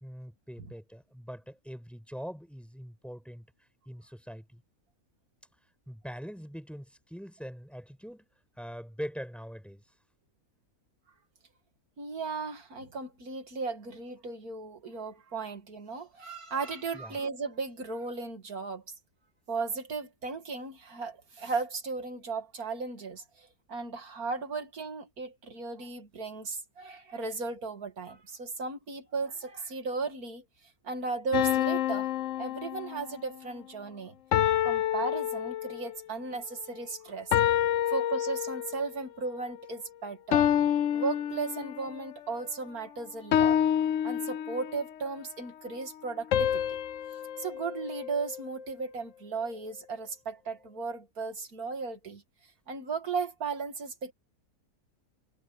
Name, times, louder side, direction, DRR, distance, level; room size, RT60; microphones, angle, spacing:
voice 1, 0.0-3.4 3.8-4.6 5.9-8.3 8.6-9.8 16.9-17.2, equal, ahead, 6.6 m, -42 dB
voice 2, 12.0-18.8 19.5-30.4 30.8-32.1 32.4-34.1 34.6-37.3 37.8-40.5 40.9-43.6 44.0-46.8 47.4-52.2 52.7-54.1, right 4 dB, 90° right, 2.8 m, -36 dB
sound 1, 31.3-33.3 34.3-36.0 37.3-38.9 40.3-42.0 43.3-44.9 46.3-48.6, left 10 dB, 65° left, 1.0 m, -28 dB
omnidirectional pair, 1.5 m